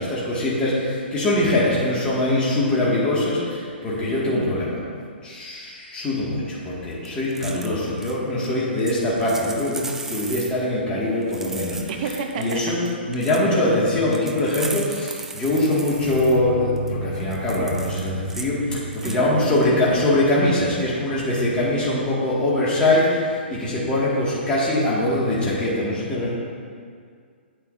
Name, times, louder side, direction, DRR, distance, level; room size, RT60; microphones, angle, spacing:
voice 1, 0.0-4.8 5.2-11.8 12.4-12.8 13.1-26.3, left 1 dB, 15° left, -7 dB, 2.1 m, -22 dB
voice 2, 4.1-4.5 7.5-7.7 11.9-12.9 19.0-19.4, right 5 dB, 45° right, 4 dB, 0.8 m, -31 dB
sound 1, 7.0-7.7 8.0-8.2 8.4-8.5 8.8-10.5 11.2-12.6 12.9-13.4 14.1-16.4 16.8-16.9 17.2-18.5 18.9-19.2 19.6-19.7, right 3 dB, 5° right, 0.4 m, -36 dB
sound 2, 15.9-21.5, left 1 dB, 55° left, 1.1 m, -33 dB
9.0 x 8.7 x 2.7 m, 2.1 s
hypercardioid pair, 125°, 6 cm